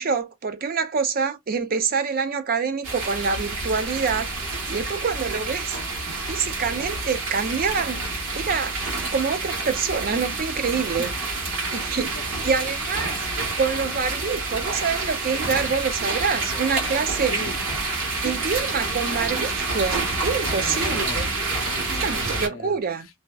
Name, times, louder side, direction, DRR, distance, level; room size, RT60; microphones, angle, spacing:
voice 1, 0.0-4.3 4.7-5.8 6.3-8.0 8.3-8.8 9.1-11.1 11.7-13.1 13.6-17.3 18.2-21.3 21.9-23.1, right 5 dB, 45° right, 0.4 m, -26 dB
sound 1, 2.8-22.5, right 3 dB, 85° right, 1.2 m, -28 dB
voice 2, 11.6-13.1 17.3-17.7 20.4-22.8, left 3 dB, 70° left, 0.6 m, -40 dB
2.6 x 2.1 x 2.3 m
head